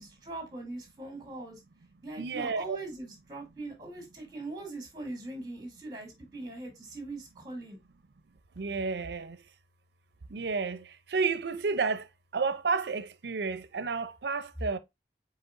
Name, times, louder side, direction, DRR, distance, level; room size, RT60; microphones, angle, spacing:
voice 1, 0.0-1.6 2.0-7.8, right 2 dB, 20° right, 2.0 m, -41 dB
voice 2, 2.2-2.8 8.6-9.4 10.3-12.1 12.3-14.8, right 4 dB, 70° right, 0.5 m, -31 dB
4.9 x 4.3 x 2.5 m
head